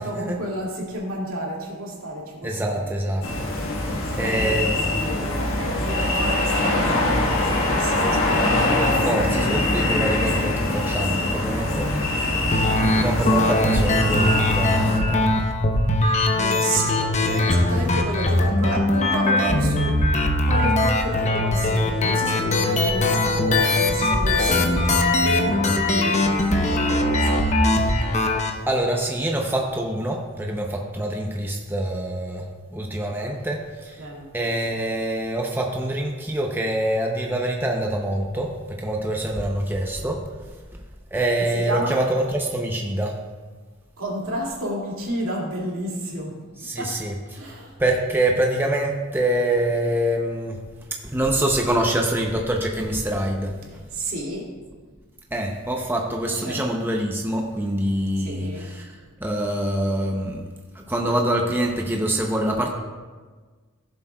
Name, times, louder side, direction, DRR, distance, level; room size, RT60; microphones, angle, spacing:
voice 1, 0.0-2.9 3.8-9.6 16.2-27.4 34.0-34.3 41.5-42.0 44.0-46.3 46.8-46.9 47.4-47.8 53.7-54.5 56.3-56.6 58.2-58.7, right 1 dB, 70° right, -3 dB, 2.4 m, -31 dB
voice 2, 2.4-3.2 3.7-4.8 8.8-12.1 13.0-15.3 17.8-18.0 28.7-34.1 34.3-40.2 41.1-43.2 46.6-47.4 47.8-50.6 51.0-53.8 55.3-60.4 60.7-62.7, right 1 dB, 10° right, 0 dB, 0.7 m, -25 dB
sound 1, 3.2-15.0, left 1 dB, 70° left, 1.5 m, -23 dB
sound 2, 12.5-28.5, left 1 dB, 35° left, 0.9 m, -21 dB
16.0 x 7.3 x 2.3 m, 1.4 s
head